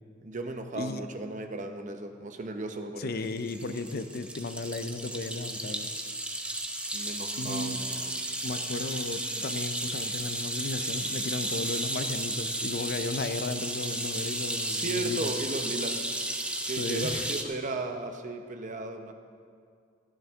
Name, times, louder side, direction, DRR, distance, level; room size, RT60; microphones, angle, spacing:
voice 1, 0.2-3.1 6.9-8.3 14.7-16.0 16.7-19.1, right 2 dB, 40° right, 6 dB, 0.7 m, -36 dB
voice 2, 3.0-5.9 7.4-7.9 8.4-15.3 16.8-17.3, left 3 dB, 50° left, 10 dB, 0.6 m, -35 dB
sound 1, 3.2-17.4, right 1 dB, 5° right, 0.7 m, -33 dB
15.5 x 12.0 x 3.6 m, 2.3 s
head